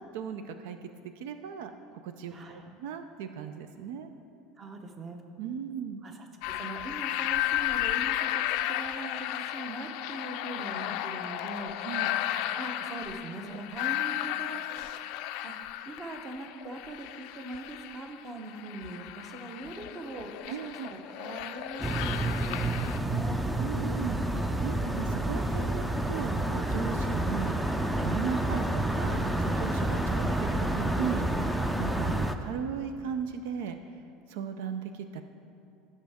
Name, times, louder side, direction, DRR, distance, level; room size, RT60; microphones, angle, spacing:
voice 1, 0.0-4.1 5.4-6.0 11.8-12.2 20.5-20.9 23.6-34.0 34.3-35.2, right 7 dB, 85° right, 8 dB, 0.5 m, -37 dB
voice 2, 2.3-2.7 4.6-5.2 6.0-12.0 12.3-15.0 15.4-20.3 20.6-23.4, right 2 dB, 30° right, 4 dB, 0.9 m, -42 dB
sound 1, 6.4-23.0, left 13 dB, 65° left, 0.4 m, -34 dB
sound 2, 21.8-32.4, right 1 dB, 5° right, 0.4 m, -29 dB
15.5 x 6.4 x 3.5 m, 2.6 s
cardioid pair, 150°, 0 cm